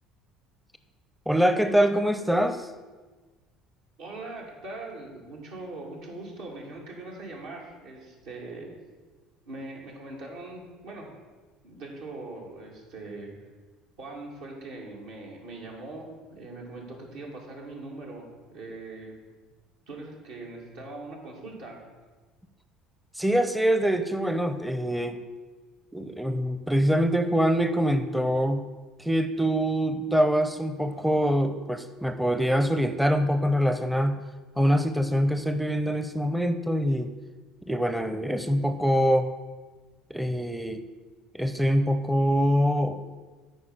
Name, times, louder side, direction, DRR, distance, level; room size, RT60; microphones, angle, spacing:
voice 1, 1.3-2.7 23.1-25.2 25.9-28.7 29.0-34.2 34.6-37.1 37.7-39.3 40.1-40.8 41.3-43.0, equal, 5° right, 8 dB, 0.6 m, -24 dB
voice 2, 4.0-8.7 9.5-11.1 11.6-13.3 14.0-19.1 19.9-21.8, right 2 dB, 80° right, -2 dB, 2.5 m, -41 dB
8.8 x 4.8 x 7.1 m, 1.3 s
hypercardioid pair, 75°, 0 cm